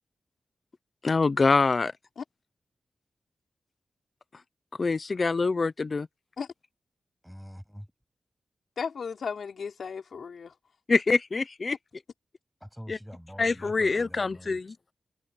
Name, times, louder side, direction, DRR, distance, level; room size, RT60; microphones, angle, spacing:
voice 1, 1.0-1.9 4.8-6.1 10.9-11.7 12.9-13.0 13.4-14.7, left 4 dB, 35° left, 0.7 m, -25 dB
voice 2, 7.2-7.9 12.6-14.6, equal, ahead, 8.0 m, -45 dB
voice 3, 8.8-10.5 11.7-11.8, left 6 dB, 65° left, 4.1 m, -35 dB
wide cardioid pair, 155°, 0 cm